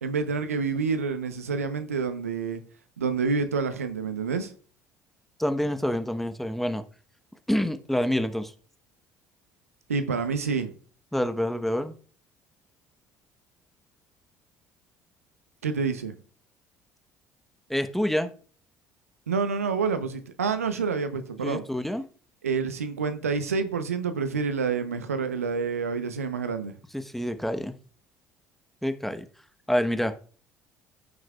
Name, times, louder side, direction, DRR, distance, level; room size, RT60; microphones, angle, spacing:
voice 1, 0.0-2.6 3.0-4.5 9.9-10.7 15.6-16.1 19.3-21.6 22.4-26.7, right 5 dB, 85° right, 0.8 m, -28 dB
voice 2, 5.4-6.8 7.5-8.5 11.1-11.9 17.7-18.3 21.4-22.1 26.9-27.7 28.8-29.3 29.7-30.1, equal, 5° left, 1.0 m, -27 dB
14.0 x 6.3 x 2.4 m
figure-of-eight pair, 55°, 8 cm